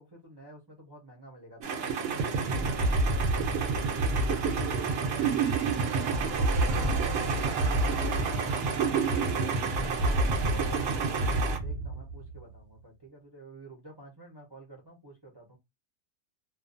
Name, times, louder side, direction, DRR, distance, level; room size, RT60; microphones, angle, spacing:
voice 1, 0.0-2.1 2.4-5.4 11.0-15.6, right 1 dB, 25° right, 0.6 m, -50 dB
sound 1, 1.6-11.6, right 6 dB, 60° right, 0.7 m, -33 dB
sound 2, 1.6-1.7 1.9-12.4, right 3 dB, 80° right, 1.0 m, -29 dB
voice 2, 6.6-11.3, left 3 dB, 50° left, 0.9 m, -45 dB
2.4 x 2.2 x 2.4 m
omnidirectional pair, 1.4 m